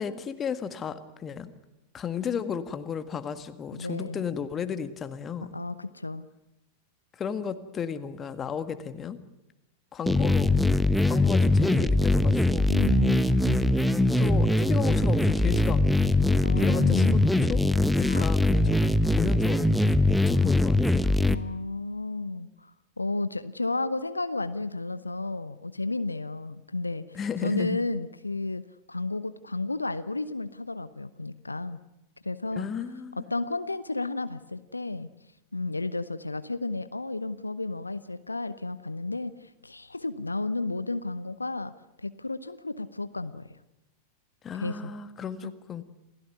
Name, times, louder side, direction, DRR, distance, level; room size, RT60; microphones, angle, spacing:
voice 1, 0.0-1.5 1.9-5.6 7.1-9.2 9.9-10.6 11.0-12.7 14.2-17.6 18.0-19.7 20.1-21.2 27.1-27.8 32.5-33.2 44.4-45.8, left 7 dB, 25° left, 10 dB, 1.8 m, -34 dB
voice 2, 3.7-4.3 5.5-6.3 12.7-13.9 16.4-17.3 18.0-18.3 21.3-22.7 23.0-28.6 28.9-31.8 32.2-32.7 33.2-35.1 35.5-41.7 42.0-43.6 44.6-44.9 45.4-45.5, left 2 dB, 80° left, 13 dB, 0.8 m, -33 dB
sound 1, 10.1-21.3, left 2 dB, ahead, 1.1 m, -22 dB
28.5 x 16.0 x 9.6 m, 0.94 s
figure-of-eight pair, 90°, 0 cm